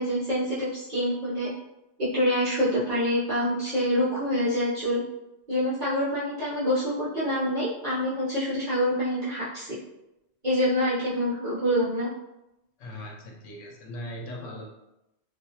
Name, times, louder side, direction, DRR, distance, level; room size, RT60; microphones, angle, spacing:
voice 1, 0.0-1.5 2.0-5.0 5.5-9.8 10.4-12.1, equal, 45° right, -11 dB, 0.8 m, -26 dB
voice 2, 12.8-14.7, left 1 dB, 85° left, -1 dB, 0.9 m, -39 dB
2.4 x 2.3 x 2.7 m, 0.90 s
omnidirectional pair, 1.2 m